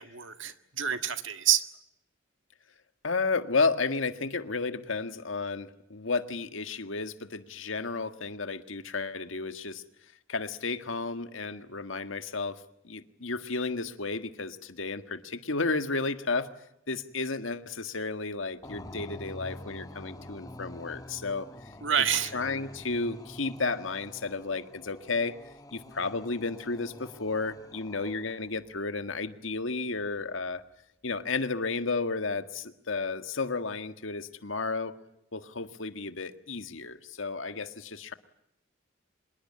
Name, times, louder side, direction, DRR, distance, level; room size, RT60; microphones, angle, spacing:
voice 1, 0.0-1.7 21.8-22.3, right 9 dB, 70° right, 1.8 m, -28 dB
voice 2, 3.0-9.8 10.3-16.5 16.9-21.5 22.3-25.4 25.7-30.6 31.0-35.0 35.3-38.1, left 3 dB, 80° left, 1.8 m, -32 dB
sound 1, 18.6-28.5, left 1 dB, 20° left, 1.5 m, -47 dB
25.5 x 22.0 x 8.7 m
head